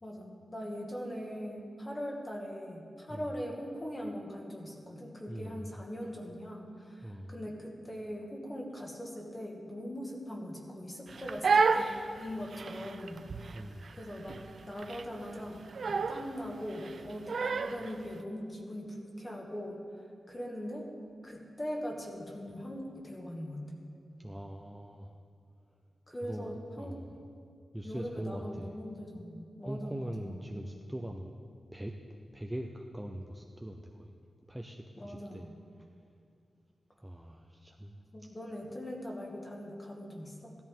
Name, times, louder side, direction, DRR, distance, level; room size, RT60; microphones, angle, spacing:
voice 1, 0.0-14.4 14.7-19.8 20.3-20.9 21.2-23.6 26.1-27.0 27.8-30.6 35.0-35.5 38.0-40.6, equal, 20° left, 0 dB, 1.6 m, -41 dB
voice 2, 5.3-5.7 7.0-7.3 13.5-13.8 24.2-25.1 26.2-27.2 27.7-28.8 29.6-31.3 31.7-31.9 32.3-34.1 34.5-35.5 37.0-38.0, right 1 dB, 5° right, 2 dB, 0.5 m, -41 dB
Crying sobbing, 11.1-17.9, right 4 dB, 55° right, 0.5 m, -31 dB
16.5 x 13.0 x 3.7 m, 2.4 s
wide cardioid pair, 165°, 0 cm